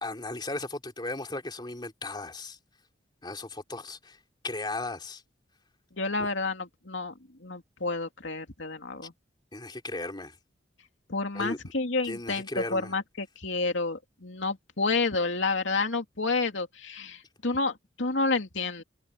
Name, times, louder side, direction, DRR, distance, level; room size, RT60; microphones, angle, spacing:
voice 1, 0.0-2.6 3.2-4.2 4.4-5.2 6.2-6.3 9.5-10.4 11.3-11.6 12.0-12.9, left 2 dB, 25° left, 3.2 m, -36 dB
voice 2, 6.0-7.1 7.4-9.1 11.1-18.8, left 3 dB, 80° left, 2.6 m, -30 dB
head